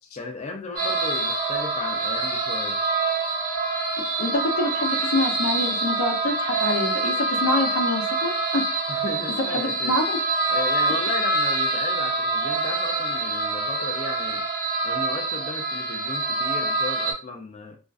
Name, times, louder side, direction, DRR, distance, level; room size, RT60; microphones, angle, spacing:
voice 1, 0.2-2.8 8.9-9.9 10.5-14.5 14.8-17.8, left 3 dB, 30° left, 0.5 m, -35 dB
sound 1, 0.8-17.1, right 3 dB, 45° right, 1.0 m, -25 dB
voice 2, 4.2-8.6 9.5-10.2, left 2 dB, 80° left, 0.6 m, -26 dB
2.5 x 2.2 x 2.4 m
head